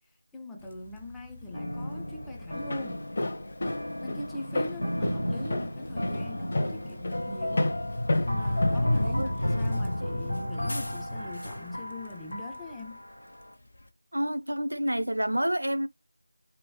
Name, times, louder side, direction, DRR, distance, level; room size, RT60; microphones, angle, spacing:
voice 1, 0.3-3.1 4.0-7.8 8.2-13.0, left 1 dB, 5° left, 0.4 m, -41 dB
Bus, 0.6-13.9, left 1 dB, 60° left, 1.0 m, -47 dB
sound 1, 1.5-13.0, left 1 dB, 80° left, 0.9 m, -32 dB
Walk footsteps, 2.5-9.6, left 2 dB, 35° left, 0.8 m, -32 dB
voice 2, 9.0-9.3 14.1-15.9, equal, 75° right, 0.6 m, -28 dB
3.7 x 3.5 x 3.0 m
figure-of-eight pair, 170°, 0 cm